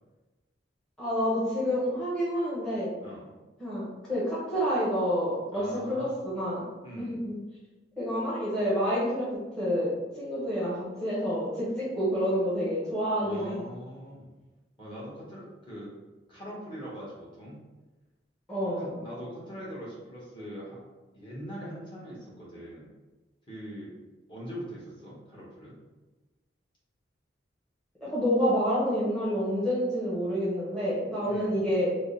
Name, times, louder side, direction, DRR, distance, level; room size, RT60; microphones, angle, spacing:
voice 1, 1.0-2.9 3.6-6.7 7.0-7.4 8.0-9.3 9.6-13.6 18.5-19.0 28.0-32.0, equal, 5° left, -10 dB, 1.0 m, -28 dB
voice 2, 5.5-6.2 6.8-7.2 13.2-14.3 14.8-15.9 16.3-17.6 18.6-20.8 21.1-22.9 23.5-23.9 24.3-25.8 31.2-31.6, equal, 25° left, -7 dB, 1.2 m, -42 dB
3.6 x 2.1 x 3.7 m, 1.2 s
head